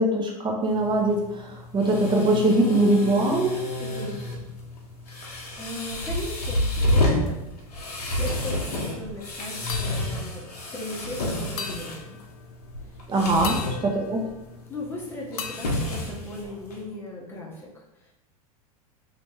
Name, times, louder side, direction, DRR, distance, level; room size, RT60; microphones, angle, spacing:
voice 1, 0.0-3.5 13.1-14.2, right 1 dB, 25° right, 1 dB, 0.9 m, -22 dB
sound 1, 0.6-16.8, left 1 dB, 90° left, 1.0 m, -30 dB
voice 2, 3.8-4.2 5.6-7.3 8.1-10.4 10.7-12.2 12.8-13.0 13.4-13.9 14.7-18.1, left 1 dB, 10° left, -5 dB, 0.9 m, -37 dB
sound 2, 8.3-8.9 9.7-11.1 11.6-12.6 13.4-14.9 15.4-16.8, left 7 dB, 65° left, 0.5 m, -40 dB
3.2 x 2.9 x 3.6 m, 0.92 s
hypercardioid pair, 100°, 19 cm